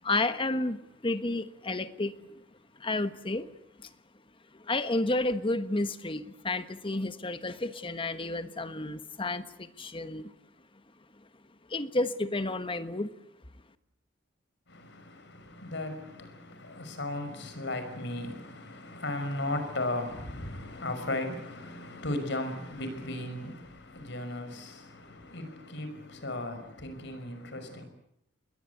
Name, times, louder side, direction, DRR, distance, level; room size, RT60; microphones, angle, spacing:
voice 1, 0.0-2.4 2.8-3.5 3.8-3.9 4.5-10.3 11.7-13.1, left 2 dB, 30° left, 1.3 m, -31 dB
voice 2, 14.7-27.8, left 1 dB, 65° left, 5.7 m, -36 dB
29.0 x 21.5 x 8.3 m
head